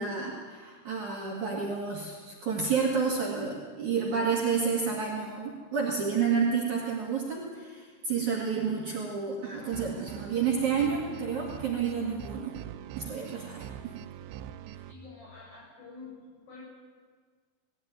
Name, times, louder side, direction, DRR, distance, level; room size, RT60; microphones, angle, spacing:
voice 1, 0.0-12.5 13.0-14.0, right 5 dB, 45° right, -2 dB, 3.1 m, -30 dB
sound 1, 9.6-14.9, right 9 dB, 80° right, 3.0 m, -43 dB
voice 2, 14.9-16.6, left 4 dB, 50° left, -5 dB, 9.0 m, -48 dB
20.0 x 16.0 x 9.4 m, 1.5 s
omnidirectional pair, 5.4 m